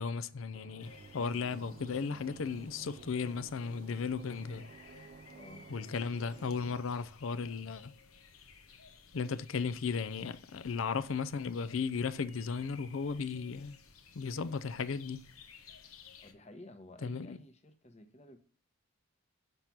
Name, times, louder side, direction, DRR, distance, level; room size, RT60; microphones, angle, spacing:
voice 1, 0.0-4.7 5.7-7.9 9.1-13.8 14.1-15.2 17.0-17.4, left 5 dB, 65° left, 0.5 m, -35 dB
sound 1, 0.5-6.8, right 3 dB, 45° right, 0.4 m, -53 dB
sound 2, 0.8-16.3, left 5 dB, 90° left, 1.0 m, -57 dB
voice 2, 5.3-5.7 16.2-18.4, left 1 dB, 30° left, 0.9 m, -53 dB
6.8 x 5.8 x 6.0 m
head